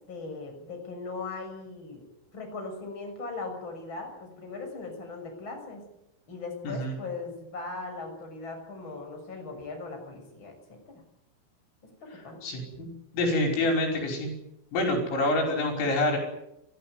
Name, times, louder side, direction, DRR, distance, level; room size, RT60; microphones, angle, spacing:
voice 1, 0.0-2.0 2.3-5.9 6.3-11.0 12.1-12.4, left 3 dB, 25° left, 3 dB, 7.0 m, -39 dB
voice 2, 6.6-7.0 12.4-12.9 13.1-14.3 14.7-16.2, left 1 dB, 75° left, 3 dB, 7.9 m, -26 dB
30.0 x 15.0 x 9.5 m, 0.81 s
omnidirectional pair, 6.0 m